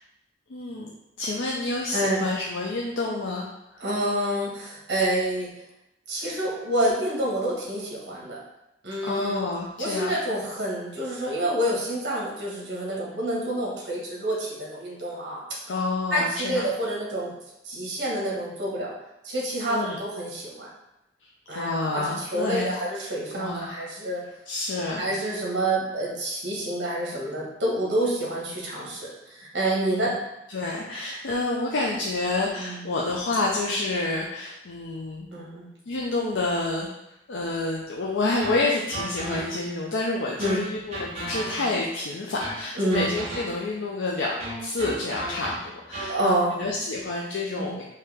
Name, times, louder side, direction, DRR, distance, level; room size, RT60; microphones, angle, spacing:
voice 1, 0.5-0.9 1.2-3.8 9.0-10.1 15.7-16.7 19.7-20.0 21.5-23.1 23.3-23.8 24.5-25.1 29.8-30.1 30.5-35.3 35.9-36.9 37.3-47.8, left 2 dB, 90° left, -3 dB, 0.5 m, -28 dB
voice 2, 1.9-2.2 3.8-5.5 6.1-8.4 8.8-9.5 9.8-15.4 16.1-17.3 17.6-18.9 19.2-20.7 21.5-24.2 25.0-30.2 32.6-32.8 35.3-35.6 40.4-40.6 42.7-43.0 46.1-46.7 47.5-47.8, right 1 dB, 65° right, -3 dB, 1.5 m, -28 dB
sound 1, 38.4-39.8 40.4-41.9 42.4-43.8 44.4-46.2, right 1 dB, 35° right, 1.0 m, -35 dB
4.8 x 2.8 x 3.5 m, 0.86 s
head